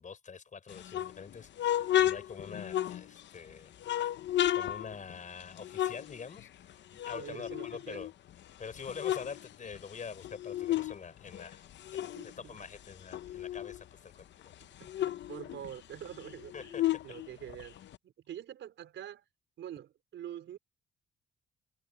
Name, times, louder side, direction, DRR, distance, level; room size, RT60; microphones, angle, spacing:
voice 1, 0.0-3.7 4.5-8.1 8.6-11.6 11.9-14.5 16.5-16.8, left 6 dB, 40° left, 4.5 m, -45 dB
sound 1, 0.7-3.4 3.8-6.7 7.0-8.3 8.7-11.0 11.3-13.8 14.2-14.3 14.5-18.0, left 12 dB, 65° left, 0.8 m, -33 dB
voice 2, 7.1-8.1 12.1-12.6 14.6-17.8 18.0-19.2 19.6-20.6, right 10 dB, 70° right, 5.1 m, -46 dB
cardioid pair, 90°, 20 cm